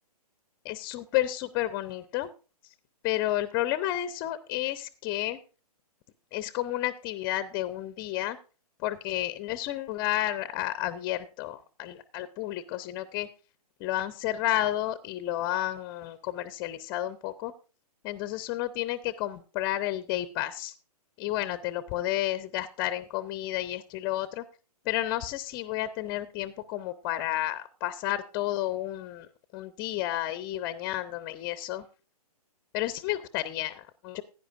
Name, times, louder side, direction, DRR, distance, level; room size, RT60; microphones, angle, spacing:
voice 1, 0.6-2.3 3.0-5.4 6.3-8.4 8.8-13.3 13.8-17.5 18.0-20.7 21.2-24.4 24.9-29.3 29.5-31.9 32.7-34.2, left 14 dB, 20° left, 14 dB, 0.5 m, -31 dB
15.5 x 9.9 x 2.4 m, 0.34 s
figure-of-eight pair, 125°, 20 cm